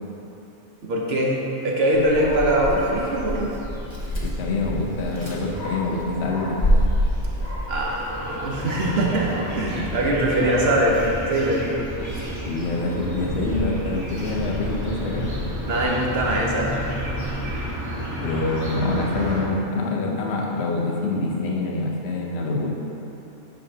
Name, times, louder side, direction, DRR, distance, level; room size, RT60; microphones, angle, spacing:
voice 1, 0.8-3.5 7.7-11.0 11.3-11.6 15.7-16.7, right 1 dB, 60° right, -3 dB, 1.1 m, -22 dB
Dog, 1.9-17.7, equal, 25° left, 0.9 m, -30 dB
voice 2, 4.2-6.6 12.4-15.5 18.2-22.7, left 2 dB, 60° left, -1 dB, 1.0 m, -26 dB
sound 1, 6.9-19.4, equal, 15° right, 1.5 m, -32 dB
9.1 x 5.7 x 2.8 m, 2.9 s
omnidirectional pair, 1.2 m